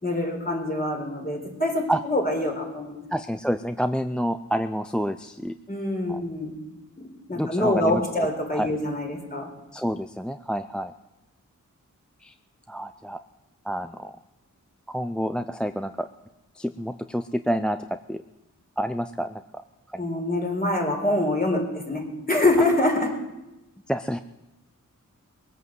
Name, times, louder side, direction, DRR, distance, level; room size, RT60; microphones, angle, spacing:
voice 1, 0.0-3.0 5.7-6.6 7.0-9.5 20.0-23.2, left 1 dB, 30° left, 1 dB, 4.0 m, -25 dB
voice 2, 3.1-5.6 6.1-6.2 7.3-8.3 8.5-8.7 9.7-10.9 12.2-12.3 12.7-13.2 13.6-14.1 14.9-16.1 16.5-17.8 18.1-18.2 18.8-19.6 19.9-20.1 23.9-24.2, equal, 5° left, 9 dB, 0.4 m, -28 dB
20.5 x 8.3 x 7.7 m, 0.99 s
wide cardioid pair, 80°, 33 cm